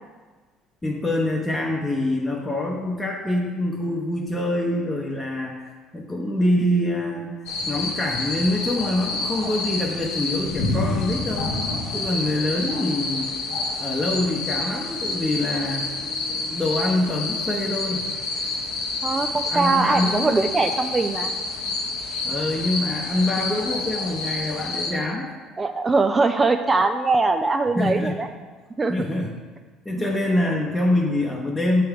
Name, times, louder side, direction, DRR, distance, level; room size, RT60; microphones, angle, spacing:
voice 1, 0.8-5.6 5.9-7.4 7.7-11.6 11.9-13.3 13.8-15.9 16.4-18.1 19.5-20.4 22.2-25.3 27.8-28.1 28.9-29.4 29.8-31.8, left 1 dB, 10° left, -2 dB, 0.7 m, -25 dB
sound 1, 7.5-24.9, left 3 dB, 80° left, 0.9 m, -28 dB
voice 2, 19.0-21.3 22.1-22.2 25.6-28.3 28.8-28.9 30.0-30.1, right 3 dB, 25° right, 7 dB, 0.3 m, -22 dB
6.9 x 3.4 x 4.7 m, 1.4 s
supercardioid pair, 90°, 0 cm